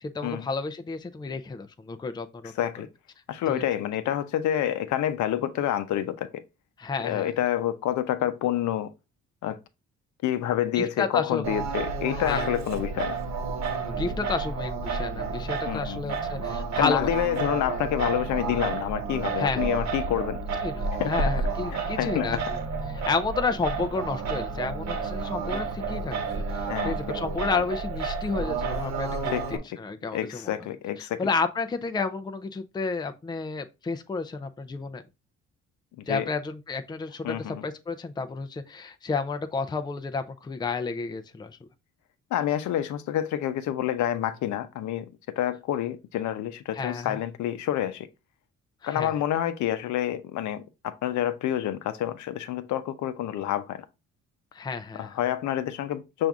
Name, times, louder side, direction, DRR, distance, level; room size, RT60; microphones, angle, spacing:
voice 1, 0.0-2.5 3.5-3.7 6.8-7.3 10.7-11.4 12.1-12.5 13.8-17.1 19.4-19.7 20.6-22.6 22.9-29.3 29.8-30.5 31.0-35.0 36.1-41.6 46.7-47.2 48.8-49.1 54.5-55.2, left 4 dB, 15° left, 0.5 m, -31 dB
voice 2, 3.3-6.4 7.0-8.9 9.4-9.6 10.2-13.2 15.7-16.2 16.8-20.4 21.0-21.1 21.7-22.4 26.7-27.0 29.3-29.6 30.1-31.2 36.0-36.3 37.2-37.6 42.3-48.1 48.8-53.8 55.0-56.3, left 11 dB, 75° left, 0.6 m, -28 dB
Singing, 11.4-29.6, right 4 dB, 60° right, 1.0 m, -31 dB
5.8 x 2.6 x 3.5 m
cardioid pair, 90°, 30 cm